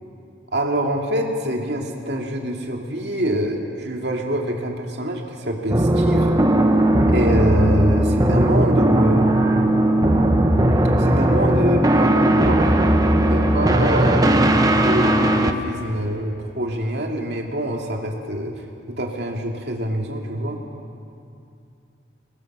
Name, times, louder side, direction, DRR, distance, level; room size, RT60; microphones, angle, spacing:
voice 1, 0.5-6.3 7.1-9.4 11.0-12.8 13.2-18.5 18.9-20.6, right 1 dB, 60° right, 1 dB, 2.4 m, -25 dB
sound 1, 5.7-15.5, right 1 dB, 20° right, 0.9 m, -17 dB
23.5 x 20.0 x 6.1 m, 2.6 s
head